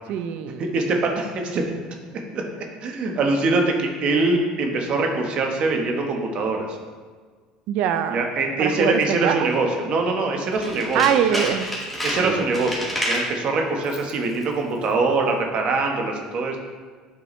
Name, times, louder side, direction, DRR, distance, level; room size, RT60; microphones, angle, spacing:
voice 1, 0.1-0.7 7.7-8.2 8.6-9.4 10.9-11.7 12.2-12.5, right 9 dB, 65° right, 10 dB, 0.4 m, -23 dB
voice 2, 0.6-1.6 2.3-2.4 2.8-6.7 8.1-11.0 11.3-11.4 12.0-16.6, right 3 dB, 50° right, 2 dB, 1.1 m, -23 dB
Tools, 10.5-13.3 13.8-14.2 14.4-14.5, equal, ahead, 1.7 m, -29 dB
8.3 x 4.7 x 3.1 m, 1.5 s
supercardioid pair, 105°, 2 cm